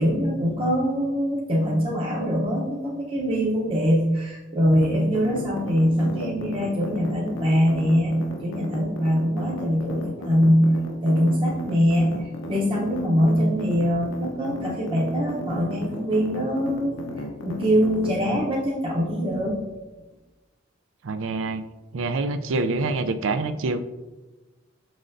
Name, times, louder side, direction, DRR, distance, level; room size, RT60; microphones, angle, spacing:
voice 1, 0.0-8.2 8.4-10.7 11.0-12.2 12.5-17.0 17.4-19.6, equal, 25° right, -4 dB, 0.8 m, -23 dB
sound 1, 4.7-18.1, left 1 dB, 90° left, 0.8 m, -34 dB
voice 2, 21.0-21.6 21.9-23.8, right 3 dB, 80° right, 10 dB, 0.4 m, -26 dB
6.4 x 6.0 x 2.6 m, 1.2 s
head